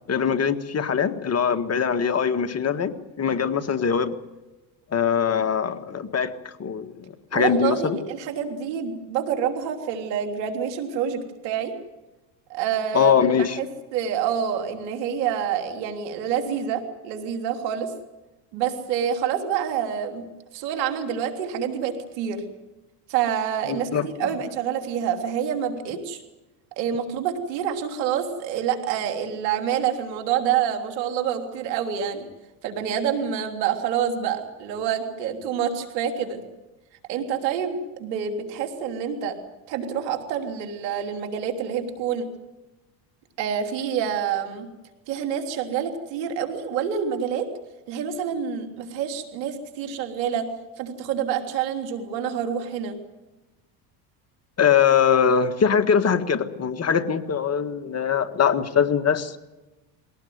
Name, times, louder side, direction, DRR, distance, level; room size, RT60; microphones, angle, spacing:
voice 1, 0.1-2.9 3.2-4.1 4.9-6.3 6.6-7.0 7.3-8.0 12.9-13.6 23.7-24.1 54.6-59.4, left 7 dB, 30° left, 9 dB, 1.7 m, -22 dB
voice 2, 7.3-11.7 12.5-13.2 13.6-13.7 13.9-17.9 18.5-20.2 20.5-22.4 23.1-26.2 26.8-32.3 32.6-36.4 37.1-39.3 39.7-42.3 43.4-44.7 45.1-47.5 47.9-50.5 50.8-53.0, right 8 dB, 90° right, 5 dB, 3.5 m, -27 dB
22.0 x 18.0 x 9.5 m, 1.1 s
supercardioid pair, 100°, 49 cm